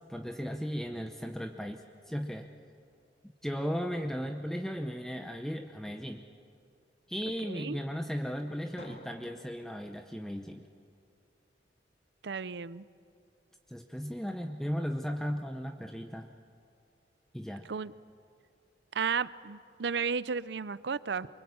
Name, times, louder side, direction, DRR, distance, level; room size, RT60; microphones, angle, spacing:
voice 1, 0.1-2.5 3.4-6.2 7.1-10.6 13.7-16.3 17.3-17.7, equal, 5° left, 5 dB, 0.7 m, -36 dB
voice 2, 7.4-7.8 12.2-12.9 17.7-17.9 18.9-21.3, right 5 dB, 70° right, 18 dB, 0.6 m, -33 dB
Drum, 8.8-10.7, left 1 dB, 60° left, 3.7 m, -53 dB
24.0 x 23.5 x 8.7 m, 2.4 s
head